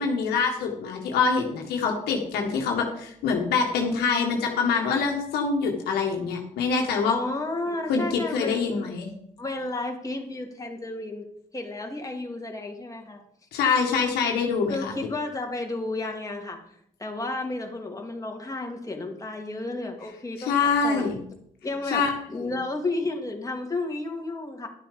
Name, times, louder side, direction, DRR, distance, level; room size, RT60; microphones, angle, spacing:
voice 1, 0.0-7.2 7.9-9.1 13.5-15.1 20.4-21.1 21.9-22.1 22.4-22.5, left 5 dB, 85° left, 1 dB, 1.7 m, -25 dB
voice 2, 7.1-8.8 9.4-11.2 11.5-13.2 14.7-16.6 17.0-21.1 21.6-24.7, left 2 dB, 20° left, 1 dB, 2.6 m, -32 dB
11.5 x 7.4 x 5.1 m, 0.70 s
supercardioid pair, 60°, 16 cm